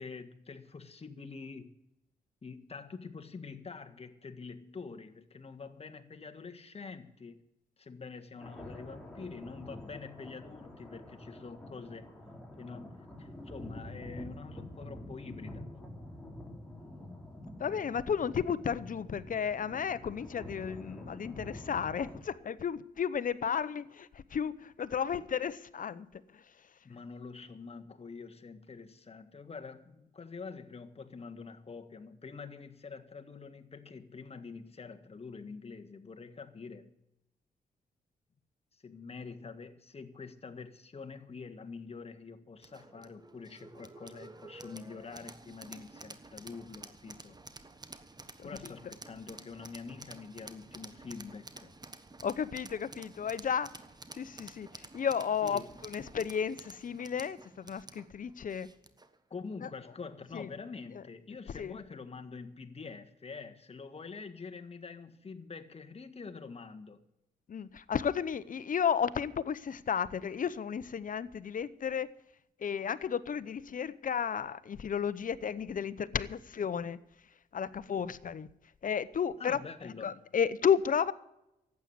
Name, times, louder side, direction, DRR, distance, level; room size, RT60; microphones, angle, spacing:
voice 1, 0.0-1.7 2.4-7.4 7.8-12.1 12.6-15.7 26.8-36.9 38.7-47.4 48.4-51.7 55.4-55.7 59.3-67.0 79.4-80.2, left 4 dB, 40° left, 1.6 m, -46 dB
sound 1, 8.4-22.2, left 1 dB, 5° left, 3.6 m, -47 dB
voice 2, 17.6-26.1 52.2-53.7 54.2-54.7 54.9-58.7 60.3-60.5 61.5-61.8 67.5-72.1 72.6-77.0 77.5-78.5 78.8-79.6 80.0-81.1, left 7 dB, 55° left, 0.8 m, -33 dB
sound 2, 42.6-59.2, right 3 dB, 25° right, 1.3 m, -51 dB
12.0 x 8.7 x 9.5 m
cardioid pair, 70°, 16 cm